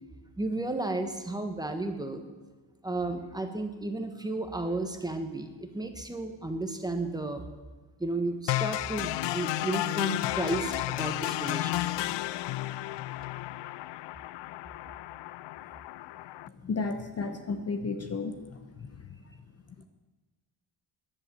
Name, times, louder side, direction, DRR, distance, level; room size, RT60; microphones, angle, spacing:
voice 1, 0.4-2.3 2.8-7.5 8.0-11.9, right 2 dB, 10° right, 6 dB, 1.4 m, -33 dB
sound 1, 8.5-16.5, left 16 dB, 65° left, 0.5 m, -32 dB
voice 2, 16.6-18.9, left 4 dB, 30° left, 7 dB, 1.0 m, -33 dB
18.0 x 11.0 x 7.0 m, 1.2 s
cardioid pair, 140°, 48 cm